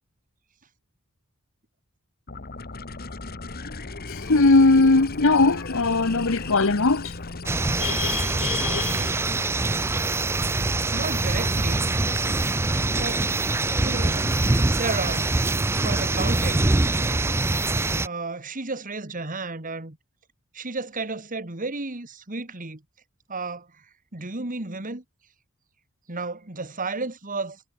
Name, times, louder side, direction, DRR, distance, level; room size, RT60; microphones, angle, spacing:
sound 1, 2.3-9.1, left 3 dB, 45° left, 1.8 m, -36 dB
voice 1, 4.1-7.1 7.8-9.1, left 3 dB, 60° left, 1.2 m, -20 dB
sound 2, 7.5-18.1, right 2 dB, 10° right, 0.4 m, -24 dB
voice 2, 10.9-11.9 12.9-13.2 13.8-14.3 14.7-15.3 15.7-17.3 18.0-20.0 20.5-22.8 23.3-23.7 24.1-25.0 26.1-27.6, right 3 dB, 40° right, 2.3 m, -33 dB
head